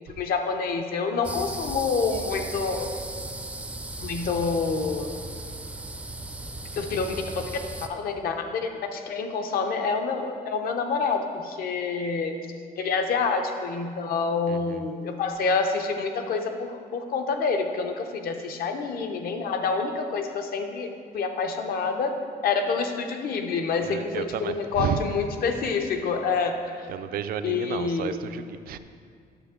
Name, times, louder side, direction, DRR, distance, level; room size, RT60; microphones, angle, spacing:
voice 1, 0.1-2.9 4.0-5.1 6.7-7.1 7.3-7.4 7.9-12.3 12.8-20.9 21.1-22.1 22.4-26.9 27.4-28.2, left 4 dB, 65° left, 5 dB, 0.8 m, -27 dB
sound 1, 1.2-7.9, right 2 dB, 5° right, 0.4 m, -36 dB
voice 2, 14.5-14.8 23.8-25.1 26.9-28.8, right 9 dB, 65° right, 10 dB, 0.4 m, -32 dB
9.8 x 6.8 x 3.7 m, 2.1 s
cardioid pair, 140°, 16 cm